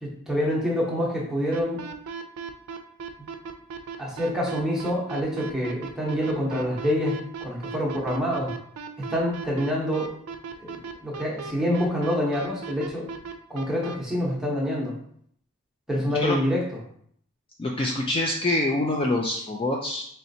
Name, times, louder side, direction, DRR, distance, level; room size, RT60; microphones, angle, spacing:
voice 1, 0.0-1.8 3.2-3.3 4.0-8.5 9.0-10.1 10.6-13.1 13.5-14.9 15.9-16.7, equal, ahead, -4 dB, 0.9 m, -26 dB
sound 1, 1.5-13.9, right 6 dB, 80° right, 0.4 m, -36 dB
voice 2, 16.0-16.4 17.6-20.0, left 2 dB, 25° left, 0 dB, 0.3 m, -26 dB
4.2 x 3.2 x 2.7 m, 0.65 s
head